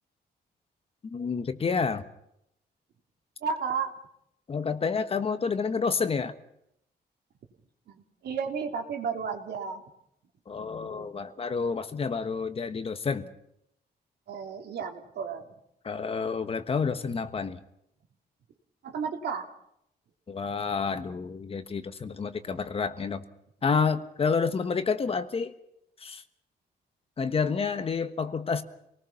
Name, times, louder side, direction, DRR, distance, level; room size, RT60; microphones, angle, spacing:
voice 1, 1.0-2.0 4.5-6.3 10.5-13.3 15.8-17.6 20.3-23.2 23.6-25.5 26.0-26.2 27.2-28.6, left 5 dB, 35° left, 10 dB, 1.3 m, -29 dB
voice 2, 3.4-3.9 7.9-9.8 10.8-11.0 14.3-15.5 18.8-19.5, right 6 dB, 75° right, 3 dB, 3.1 m, -33 dB
28.5 x 19.5 x 5.9 m, 0.77 s
wide cardioid pair, 150°, 17 cm